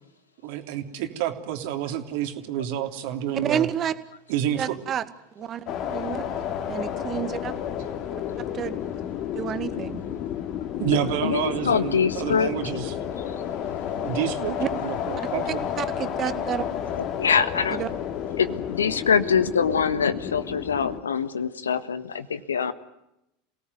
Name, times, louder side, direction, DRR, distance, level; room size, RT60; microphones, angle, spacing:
voice 1, 0.4-3.7 4.3-4.8 10.8-12.9 14.0-15.6, right 11 dB, 60° right, 6 dB, 3.3 m, -29 dB
voice 2, 3.4-3.9 4.6-5.0 5.4-5.6 5.9-6.2 6.7-7.5 8.5-8.8 9.3-10.0 14.6-14.7 15.8-16.6 17.7-17.9, right 9 dB, 35° right, 11 dB, 2.1 m, -29 dB
sound 1, 5.7-21.0, left 9 dB, 50° left, 3.0 m, -31 dB
voice 3, 10.9-12.5 17.2-17.8 18.4-22.7, left 6 dB, 85° left, 13 dB, 1.5 m, -24 dB
29.0 x 18.0 x 9.6 m, 0.86 s
hypercardioid pair, 85°, 0 cm